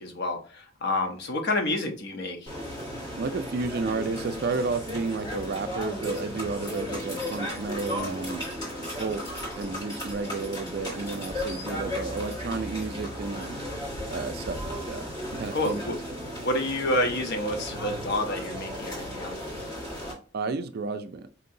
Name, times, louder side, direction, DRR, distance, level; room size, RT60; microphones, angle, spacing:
voice 1, 0.0-2.5 15.5-15.9 16.4-19.4, left 1 dB, 55° left, 5 dB, 0.8 m, -29 dB
sound 1, 2.5-20.1, equal, 20° left, 1.6 m, -35 dB
voice 2, 3.2-8.4 8.9-9.2 9.6-13.6 14.1-16.0 20.3-21.3, right 4 dB, 50° right, 10 dB, 0.4 m, -32 dB
4.5 x 2.8 x 2.6 m, 0.40 s
head